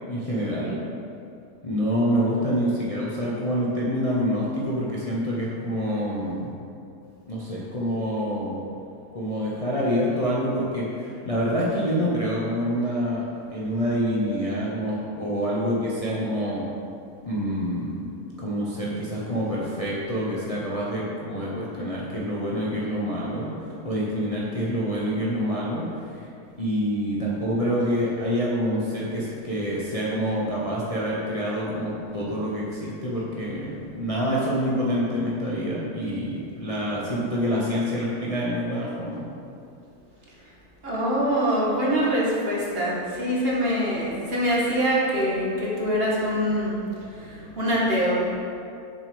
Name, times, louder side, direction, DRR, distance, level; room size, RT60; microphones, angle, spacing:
voice 1, 0.1-0.8 1.6-6.5 7.3-8.6 9.1-13.2 13.5-16.7 17.2-18.1 18.4-26.3 26.6-39.3, equal, 25° left, -6 dB, 1.0 m, -27 dB
voice 2, 40.8-48.3, equal, 40° right, -5 dB, 1.7 m, -24 dB
6.9 x 6.8 x 5.1 m, 2.5 s
omnidirectional pair, 1.6 m